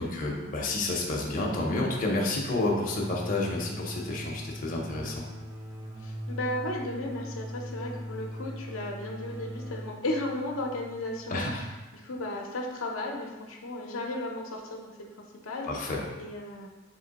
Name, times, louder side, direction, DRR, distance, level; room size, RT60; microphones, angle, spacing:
voice 1, 0.0-5.2 11.3-11.6 15.6-16.0, left 2 dB, 40° left, -2 dB, 0.6 m, -30 dB
sound 1, 2.6-12.1, equal, 15° right, 0.4 m, -40 dB
voice 2, 6.0-11.7 12.0-14.9 15.4-15.9 16.2-16.7, left 1 dB, 80° left, 0 dB, 0.6 m, -35 dB
3.7 x 2.9 x 4.0 m, 1.1 s
head